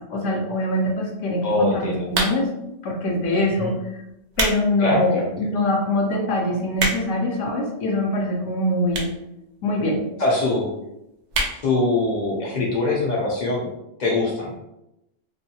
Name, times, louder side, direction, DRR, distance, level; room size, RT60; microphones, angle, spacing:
voice 1, 0.1-2.5 2.8-4.0 4.4-9.1 9.6-10.0, left 1 dB, 80° left, -1 dB, 0.9 m, -23 dB
voice 2, 1.4-2.1 3.6-3.7 4.8-5.3 10.2-10.7 11.6-13.7 14.0-14.5, left 2 dB, 50° left, -3 dB, 0.5 m, -23 dB
sound 1, 2.1-2.7 3.4-3.6 4.1-4.6 5.1-5.2 5.8-5.9 6.1-6.2 6.4-7.3 8.0-8.1 8.9-9.2 9.5-9.6 9.8-9.9 10.2-10.3 10.6-10.8 11.3-11.6 12.0-12.1 12.3-12.4, right 2 dB, 70° right, 0.8 m, -25 dB
2.5 x 2.2 x 2.7 m, 0.88 s
omnidirectional pair, 1.3 m